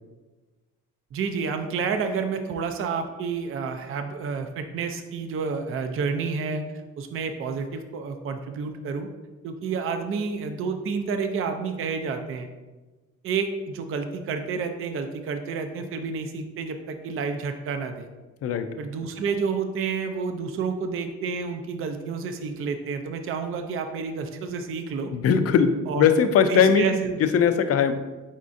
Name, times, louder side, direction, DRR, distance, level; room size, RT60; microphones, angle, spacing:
voice 1, 1.1-6.6 7.0-9.1 9.4-12.5 13.2-18.1 18.8-25.1 25.9-26.1 26.5-27.2, right 5 dB, 45° right, 6 dB, 0.4 m, -29 dB
voice 2, 25.1-26.9 27.3-27.9, left 7 dB, 50° left, 9 dB, 0.4 m, -20 dB
4.1 x 3.6 x 2.5 m, 1.2 s
cardioid pair, 90°, 30 cm